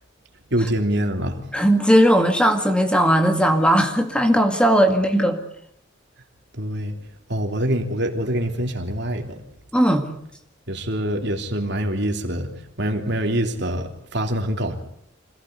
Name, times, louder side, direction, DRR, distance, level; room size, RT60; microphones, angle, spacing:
voice 1, 0.5-1.4 6.6-6.9 7.3-9.3 10.7-12.5 12.8-14.7, right 1 dB, 55° right, 4 dB, 3.3 m, -24 dB
voice 2, 1.5-5.4 9.7-10.1, equal, 5° left, 5 dB, 1.9 m, -17 dB
26.0 x 17.0 x 9.5 m, 0.72 s
head